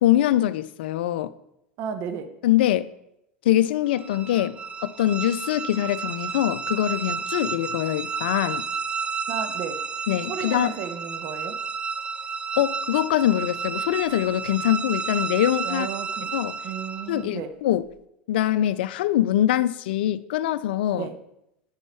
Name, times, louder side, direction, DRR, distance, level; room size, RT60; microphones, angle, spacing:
voice 1, 0.0-1.3 2.4-2.9 3.4-8.7 10.1-10.8 12.6-15.9 16.3-16.6 17.1-17.8 18.3-21.1, left 13 dB, 75° left, 0.4 m, -23 dB
voice 2, 1.8-2.3 9.3-9.8 10.3-11.5 15.6-16.3 16.6-17.5 20.9-21.2, right 7 dB, 55° right, 1.0 m, -33 dB
sound 1, 3.9-17.3, right 5 dB, 20° right, 0.5 m, -31 dB
8.2 x 5.6 x 4.4 m
hypercardioid pair, 100°, 5 cm